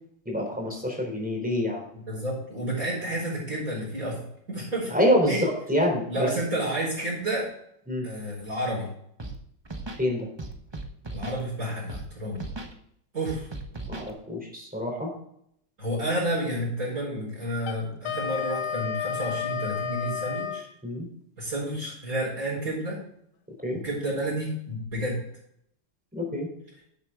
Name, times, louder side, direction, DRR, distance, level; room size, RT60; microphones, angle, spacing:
voice 1, 0.3-1.8 4.9-6.3 7.9-8.1 10.0-10.3 13.9-15.1 20.8-21.1 23.6-23.8 26.1-26.5, equal, 5° right, 0 dB, 3.7 m, -26 dB
voice 2, 1.9-4.2 4.5-4.9 5.3-5.4 6.1-7.5 8.0-8.9 11.1-12.4 13.1-13.5 15.8-20.7 21.4-23.0 23.8-25.2, right 1 dB, 40° right, -8 dB, 5.2 m, -30 dB
Scratching (performance technique), 9.2-9.4 9.6-10.0 10.4-11.4 11.9-12.1 12.3-12.7 13.3-14.1, right 2 dB, 25° right, 0.6 m, -37 dB
Wind instrument woodwind instrument, 17.6-20.7, left 8 dB, 75° left, 1.7 m, -31 dB
11.5 x 8.1 x 3.7 m, 0.71 s
omnidirectional pair, 2.3 m